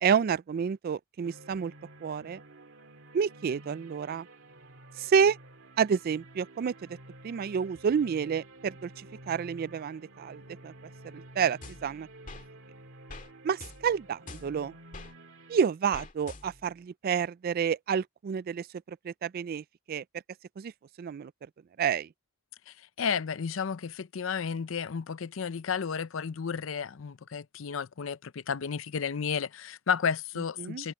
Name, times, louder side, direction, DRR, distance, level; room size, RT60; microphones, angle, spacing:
voice 1, 0.0-1.7 2.0-2.4 3.1-4.3 5.0-5.4 5.8-7.0 7.2-10.7 11.1-12.1 13.4-14.7 15.5-20.0 20.6-20.7 21.0-21.3 21.8-22.1 30.6-30.9, right 7 dB, 45° right, 0.3 m, -29 dB
sound 1, 1.2-15.6, right 1 dB, 70° right, 2.4 m, -51 dB
sound 2, 11.6-12.5 13.1-13.3 13.6-15.1 15.9-16.7, left 2 dB, 40° left, 2.0 m, -46 dB
voice 2, 22.7-30.9, left 6 dB, 70° left, 0.6 m, -32 dB
head